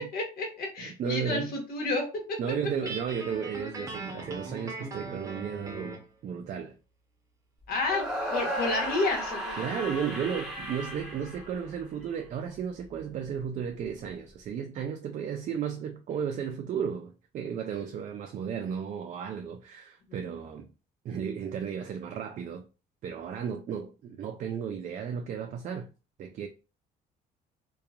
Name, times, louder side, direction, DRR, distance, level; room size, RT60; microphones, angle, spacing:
voice 1, 0.0-2.4 7.7-8.0 8.3-9.6 20.1-20.2, left 2 dB, 65° left, 1.2 m, -30 dB
voice 2, 0.8-1.5 2.4-6.8 9.6-20.7 21.0-22.6 23.0-25.9 26.2-26.5, right 7 dB, 45° right, 0.4 m, -34 dB
Guitar, 2.9-6.1, right 2 dB, 20° right, 0.8 m, -40 dB
sound 1, 7.9-12.1, equal, ahead, 1.4 m, -35 dB
2.8 x 2.3 x 2.4 m
cardioid pair, 110°, 17 cm